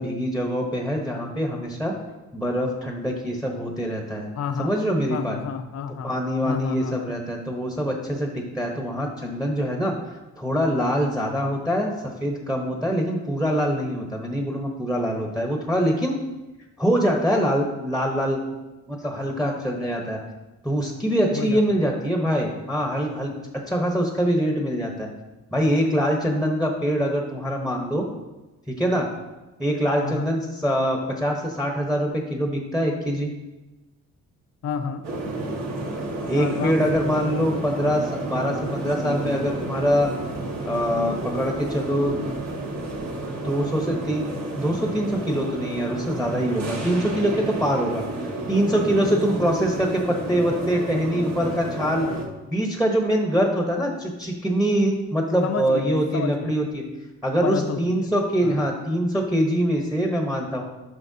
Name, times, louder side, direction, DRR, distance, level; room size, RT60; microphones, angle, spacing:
voice 1, 0.0-1.9 2.3-4.3 4.6-5.4 6.0-11.9 12.2-16.1 16.8-18.4 18.9-20.2 20.6-23.3 23.7-25.1 25.5-28.0 28.7-29.1 29.6-33.3 36.3-40.1 40.6-42.2 43.4-44.2 44.5-52.1 52.5-56.8 57.2-60.6, equal, ahead, 1 dB, 1.1 m, -24 dB
voice 2, 4.3-4.7 5.1-6.2 6.4-7.1 10.9-11.1 21.3-21.8 30.0-30.3 34.6-35.0 36.3-37.0 55.4-56.5 57.4-58.1 58.4-58.6, left 6 dB, 55° left, 8 dB, 0.7 m, -30 dB
sound 1, 35.0-52.2, right 2 dB, 65° right, 1.8 m, -31 dB
9.7 x 5.7 x 2.8 m, 1.1 s
cardioid pair, 90°, 30 cm